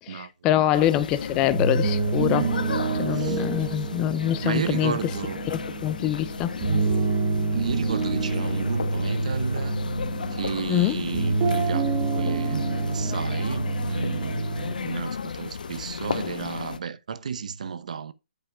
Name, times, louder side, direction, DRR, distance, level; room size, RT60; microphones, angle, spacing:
voice 1, 0.0-2.5 2.9-5.1 5.5-6.6 10.7-11.0, left 12 dB, 10° left, 0.4 m, -25 dB
sound 1, 0.7-16.8, left 6 dB, 70° left, 1.0 m, -34 dB
voice 2, 0.7-1.0 3.1-3.4 4.4-5.4 7.5-9.8 10.3-11.9 12.1-12.6 12.9-18.1, right 6 dB, 55° right, 0.7 m, -33 dB
sound 2, 1.4-14.7, right 4 dB, 20° right, 1.1 m, -27 dB
8.2 x 5.6 x 4.9 m
hypercardioid pair, 175°, 5 cm